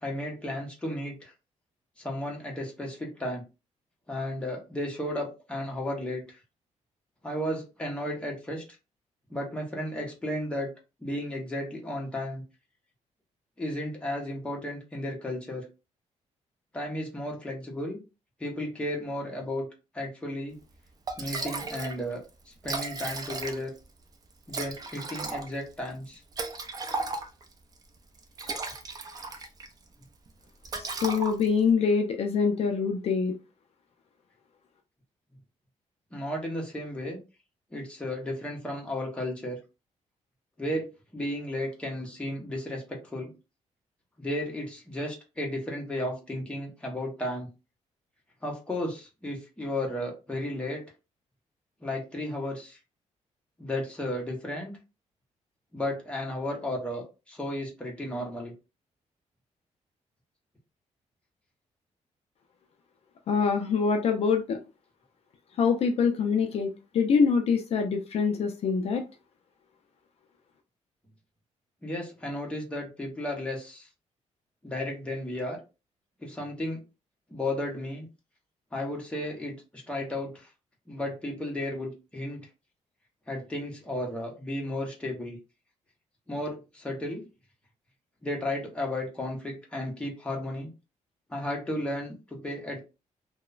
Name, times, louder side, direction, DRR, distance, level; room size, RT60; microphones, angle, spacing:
voice 1, 0.0-1.3 2.0-3.4 4.1-6.2 7.2-8.6 9.3-10.7 11.0-12.4 13.6-15.7 16.7-18.0 18.4-19.7 19.9-20.6 21.2-22.2 22.5-23.7 24.5-26.2 36.1-37.2 37.7-39.6 40.6-40.9 41.1-43.3 44.2-47.5 48.4-50.8 51.8-52.8 53.6-54.7 55.7-58.5 71.8-73.9 74.6-75.6 76.2-76.8 77.3-78.1 78.7-80.5 80.9-82.4 83.3-85.4 86.3-87.2 88.2-90.7 91.3-92.8, left 1 dB, 10° left, -1 dB, 0.8 m, -34 dB
Liquid, 20.7-20.8 21.1-22.0 22.3-22.4 22.6-23.8 24.5-27.5 28.2-29.7 30.0-30.3 30.6-31.7, right 3 dB, 30° right, 0.4 m, -35 dB
voice 2, 30.7-33.3 63.3-64.6 65.6-69.0, left 5 dB, 55° left, 4 dB, 0.4 m, -25 dB
2.9 x 2.0 x 2.3 m, 0.29 s
cardioid pair, 140°, 13 cm